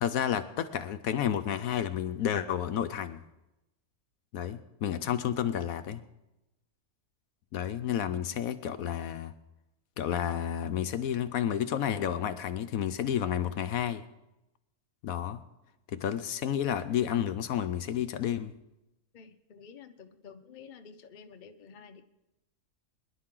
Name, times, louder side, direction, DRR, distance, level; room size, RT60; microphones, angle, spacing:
voice 1, 0.0-3.2 4.3-6.0 7.5-9.3 10.0-14.0 15.0-15.4 15.9-18.5, left 9 dB, 70° left, 11 dB, 1.0 m, -31 dB
voice 2, 19.1-22.0, left 6 dB, 40° left, 7 dB, 0.7 m, -51 dB
22.5 x 11.0 x 3.8 m, 0.94 s
omnidirectional pair, 1.6 m